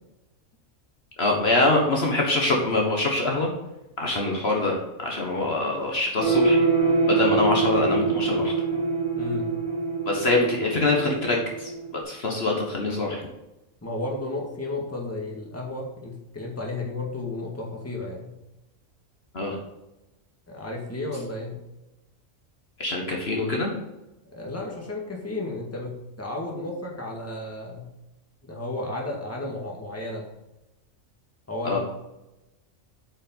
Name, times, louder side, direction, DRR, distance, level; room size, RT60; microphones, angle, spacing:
voice 1, 1.2-3.5 4.0-6.6 7.1-8.5 10.0-11.7 12.0-13.3 19.3-19.6 22.8-23.8 31.6-31.8, left 2 dB, 50° left, 0 dB, 1.7 m, -24 dB
sound 1, 6.2-12.0, right 4 dB, 85° right, 3.4 m, -24 dB
voice 2, 9.2-9.5 13.8-18.3 20.5-21.6 24.3-27.9 28.4-30.3 31.5-31.8, left 2 dB, 10° left, -2 dB, 1.8 m, -33 dB
8.5 x 5.5 x 5.5 m, 0.95 s
omnidirectional pair, 1.4 m